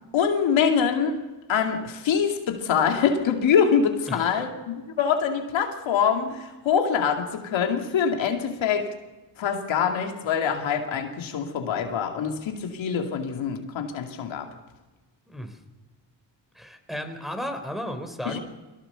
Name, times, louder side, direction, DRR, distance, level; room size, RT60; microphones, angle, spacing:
voice 1, 0.1-1.2 1.5-8.9 9.4-14.5 18.3-18.4, left 7 dB, 85° left, 2.5 m, -24 dB
voice 2, 15.3-15.6 16.5-18.4, equal, ahead, 3.9 m, -34 dB
23.0 x 17.5 x 6.9 m
cardioid pair, 70°, 45 cm